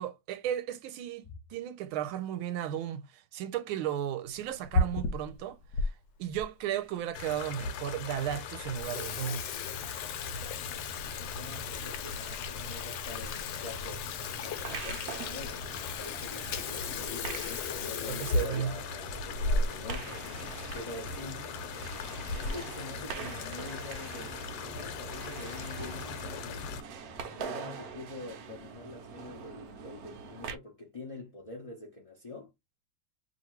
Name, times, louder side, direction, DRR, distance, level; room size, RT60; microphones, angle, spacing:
voice 1, 0.0-5.9 6.2-9.4 18.0-18.7, right 10 dB, 90° right, 1.5 m, -35 dB
Water tap faucet / Sink (filling or washing), 4.4-5.9 6.4-6.5 7.2-7.3 7.6-7.7 8.1-8.3 8.6-20.0 20.3-20.4 20.7-20.8 21.6-21.9 22.3-22.7, left 2 dB, 70° left, 1.3 m, -35 dB
sound 1, 7.1-26.8, left 6 dB, 90° left, 1.5 m, -41 dB
voice 2, 11.1-20.2 20.7-21.5 22.3-26.6 27.3-32.5, left 2 dB, 40° left, 0.5 m, -45 dB
sound 2, 14.3-30.6, right 6 dB, 70° right, 0.8 m, -44 dB
2.9 x 2.8 x 4.4 m
omnidirectional pair, 2.3 m